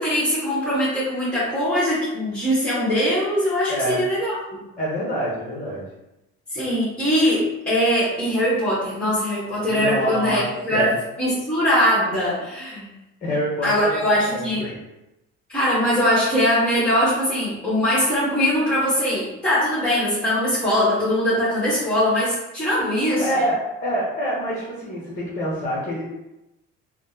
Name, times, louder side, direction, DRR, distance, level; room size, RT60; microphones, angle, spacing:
voice 1, 0.0-4.6 6.5-10.9 11.2-12.9 13.6-14.7 15.5-23.2, equal, 5° left, -10 dB, 1.4 m, -21 dB
voice 2, 3.7-4.0 4.8-5.9 9.7-10.4 10.7-10.9 13.2-14.0 14.3-14.8 23.2-23.6 23.8-26.0, equal, 25° left, -5 dB, 1.0 m, -26 dB
3.2 x 2.1 x 2.8 m, 0.95 s
supercardioid pair, 80°, 32 cm